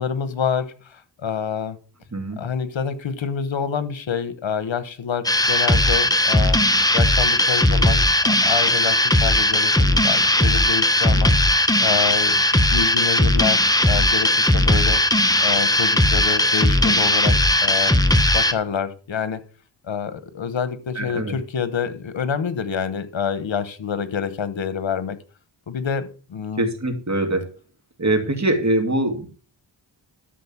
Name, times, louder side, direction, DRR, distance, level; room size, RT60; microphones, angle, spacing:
voice 1, 0.0-1.8 2.4-6.6 6.9-12.4 12.7-15.0 15.4-17.9 18.3-19.4 19.9-25.2 25.7-26.7, left 7 dB, 75° left, 12 dB, 1.3 m, -27 dB
sound 1, 5.2-18.5, left 1 dB, 10° left, 1.0 m, -18 dB
voice 2, 21.0-21.3 26.6-27.5 28.0-29.3, right 1 dB, 35° right, 5 dB, 2.5 m, -23 dB
13.0 x 4.4 x 7.2 m, 0.39 s
cardioid pair, 60°, 46 cm